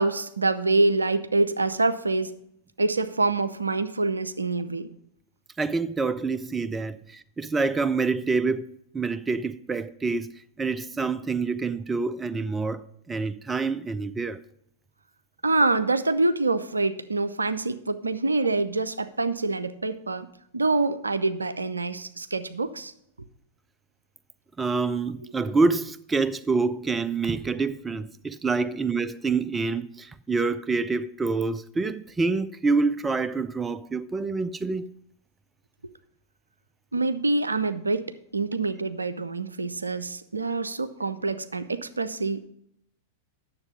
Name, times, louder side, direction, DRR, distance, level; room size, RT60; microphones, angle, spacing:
voice 1, 0.0-2.4 2.8-4.9 15.4-22.9 36.9-42.5, right 3 dB, 80° right, 0.5 m, -26 dB
voice 2, 5.6-10.3 10.6-12.8 13.1-14.4 24.6-34.9, right 4 dB, 15° right, 0.3 m, -27 dB
9.6 x 7.0 x 5.3 m
figure-of-eight pair, 95°, 0 cm